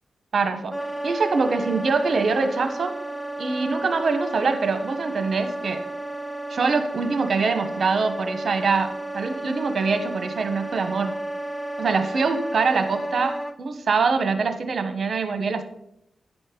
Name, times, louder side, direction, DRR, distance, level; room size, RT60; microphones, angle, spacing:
voice 1, 0.3-0.7 1.0-2.9 3.4-5.9 6.5-11.2 11.8-15.6, right 4 dB, 65° right, 8 dB, 1.1 m, -24 dB
Wind instrument woodwind instrument, 0.7-13.6, right 1 dB, ahead, 0.6 m, -32 dB
10.5 x 4.3 x 5.1 m, 0.77 s
cardioid pair, 50°, 0 cm